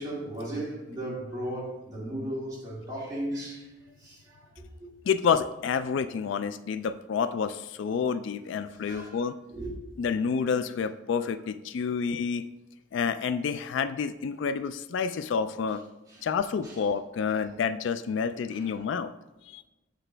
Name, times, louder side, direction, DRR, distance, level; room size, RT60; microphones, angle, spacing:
voice 1, 0.0-3.7 4.0-4.9 8.9-9.2 9.5-9.7 16.1-16.2 16.6-16.8 18.5-18.7, right 1 dB, 20° right, -6 dB, 2.0 m, -36 dB
voice 2, 5.1-9.3 10.0-12.4 12.9-15.8 16.2-19.1 19.5-19.6, left 6 dB, 65° left, 11 dB, 0.3 m, -29 dB
7.8 x 4.6 x 3.4 m, 1.0 s
head